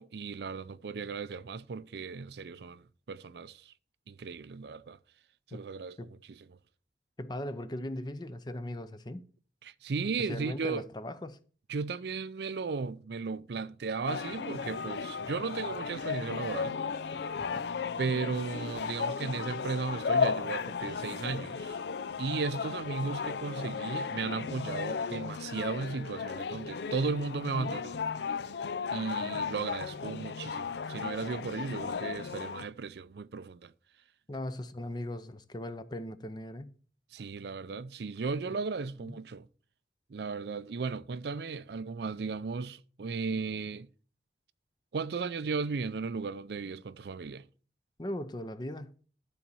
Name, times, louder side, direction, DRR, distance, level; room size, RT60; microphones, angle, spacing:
voice 1, 0.0-3.7 4.1-5.0 5.5-6.0 6.3-6.4 9.6-10.8 11.7-16.8 18.0-21.8 22.2-28.0 28.9-33.7 37.1-39.5 40.1-43.9 44.9-47.5, right 4 dB, 70° right, 0.5 m, -35 dB
voice 2, 7.2-9.2 10.2-11.4 34.3-36.7 38.5-38.6 39.0-39.2 48.0-48.9, left 1 dB, 25° left, 0.6 m, -39 dB
sound 1, 14.1-32.6, left 5 dB, 75° left, 0.5 m, -35 dB
12.0 x 4.2 x 6.9 m
head